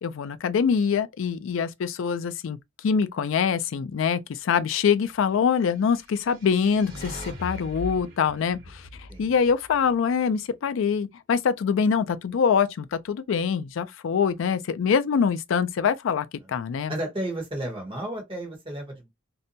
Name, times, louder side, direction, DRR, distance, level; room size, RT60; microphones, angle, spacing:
voice 1, 0.0-2.6 2.8-16.9, left 6 dB, 70° left, 0.3 m, -24 dB
sound 1, 5.9-10.2, equal, 50° right, 1.3 m, -41 dB
voice 2, 16.9-19.1, right 1 dB, 25° right, 1.0 m, -33 dB
2.6 x 2.2 x 2.6 m
head